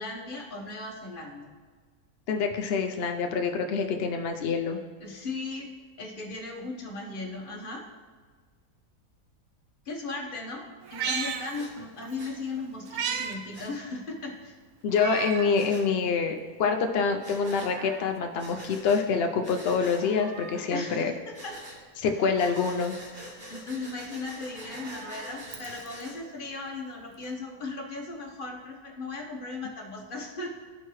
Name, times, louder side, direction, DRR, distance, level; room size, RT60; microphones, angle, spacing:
voice 1, 0.0-1.5 5.0-5.7 6.0-7.9 9.8-14.6 20.7-21.6 23.5-30.5, left 3 dB, 40° left, 0 dB, 1.1 m, -37 dB
voice 2, 2.3-4.8 14.8-21.1 22.0-23.0, left 5 dB, 75° left, 4 dB, 0.5 m, -26 dB
Meow, 10.8-12.2 12.5-13.4 13.7-13.8 14.9-15.6 16.1-16.2 17.2-18.2 19.7-20.7 22.1-22.9 24.4-26.0 27.2-27.3, right 7 dB, 75° right, 1.1 m, -37 dB
Breathing, 11.5-11.7 12.2-12.3 13.5-13.7 15.5-15.8 17.2-17.7 18.4-19.0 19.4-20.0 21.3-21.8 22.4-26.2, equal, 35° right, 1.6 m, -45 dB
13.0 x 4.5 x 3.1 m, 1.5 s
omnidirectional pair, 1.6 m